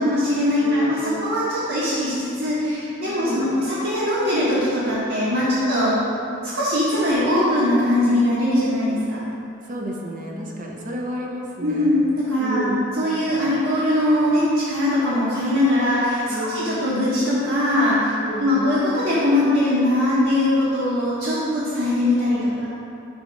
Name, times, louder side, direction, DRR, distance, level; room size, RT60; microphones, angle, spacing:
voice 1, 0.0-5.9 6.5-9.2 11.6-12.7 13.0-22.7, left 1 dB, 70° right, -12 dB, 1.4 m, -21 dB
voice 2, 0.6-1.3 3.1-3.5 5.4-6.1 9.6-12.0 12.4-12.9 16.3-17.0 18.2-18.8, equal, 40° right, -1 dB, 0.7 m, -31 dB
6.3 x 3.6 x 5.2 m, 2.7 s
head